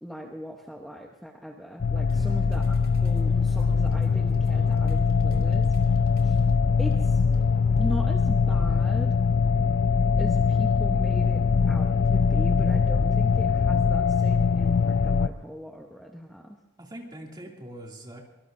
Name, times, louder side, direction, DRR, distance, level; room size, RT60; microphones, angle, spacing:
voice 1, 0.0-2.7 3.0-6.0 6.2-6.4 6.8-7.2 7.8-9.2 10.2-16.6, equal, ahead, 1 dB, 1.0 m, -38 dB
sound 1, 1.8-15.3, left 5 dB, 45° left, 0.4 m, -22 dB
sound 2, 2.0-8.1, equal, 50° right, 2.4 m, -44 dB
voice 2, 2.1-2.6 16.8-18.2, equal, 20° right, -1 dB, 2.6 m, -42 dB
24.5 x 19.0 x 2.7 m, 1.1 s
head